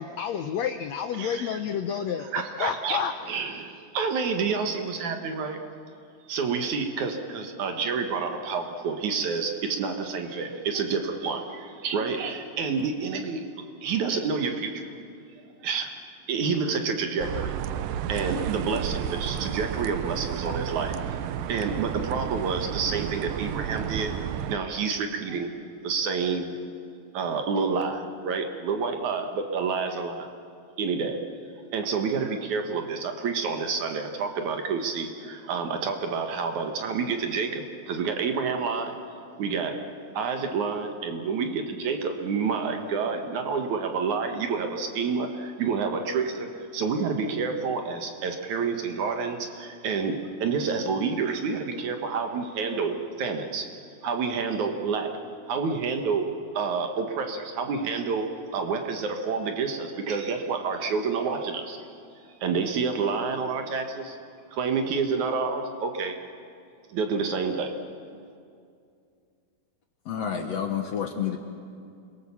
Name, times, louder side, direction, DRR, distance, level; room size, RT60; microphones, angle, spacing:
voice 1, 0.0-2.3 2.6-3.1, left 8 dB, 85° left, 8 dB, 1.5 m, -29 dB
voice 2, 1.2-1.6 2.2-3.0 3.2-5.6 6.3-13.4 13.8-14.9 15.6-16.0 16.3-17.6 18.1-21.2 21.5-24.1 24.5-25.5 25.8-26.5 27.1-30.3 30.8-31.2 31.7-39.0 39.4-39.9 40.1-53.7 54.0-55.2 55.5-56.3 56.5-58.3 58.5-61.9 62.4-64.2 64.5-66.2 66.9-67.7, right 5 dB, 60° right, 5 dB, 2.6 m, -28 dB
sound 1, 17.2-24.6, right 9 dB, 80° right, 2.5 m, -32 dB
voice 3, 70.1-71.4, left 8 dB, 65° left, 5 dB, 1.8 m, -29 dB
29.5 x 22.0 x 7.2 m, 2.4 s
omnidirectional pair, 4.1 m